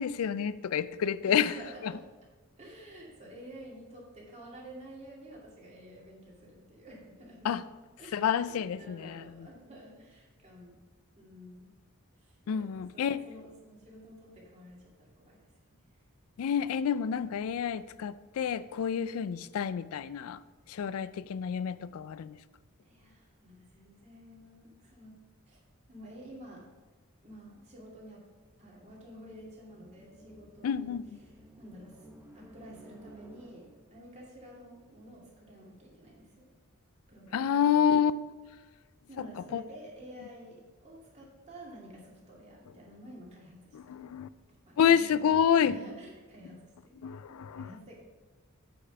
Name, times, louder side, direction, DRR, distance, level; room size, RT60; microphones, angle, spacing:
voice 1, 0.0-1.5 1.8-1.9 7.4-7.6 8.1-9.5 12.5-13.2 16.4-20.4 20.7-22.4 30.6-31.0 37.3-38.1 39.2-39.3 39.5-39.6 43.7-44.3 44.8-45.8 47.0-47.7, left 8 dB, 80° left, 16 dB, 0.3 m, -28 dB
voice 2, 1.2-2.1 2.6-7.6 8.0-10.9 11.2-11.8 12.2-15.8 22.8-25.6 25.9-26.7 27.2-28.3 28.6-32.1 32.3-36.5 37.1-37.8 39.1-44.1 44.6-45.3 45.6-47.0 47.3-48.0, right 1 dB, 30° right, -4 dB, 2.4 m, -50 dB
sound 1, 28.6-34.0, equal, 10° right, 0.8 m, -56 dB
8.3 x 5.4 x 5.8 m, 1.4 s
head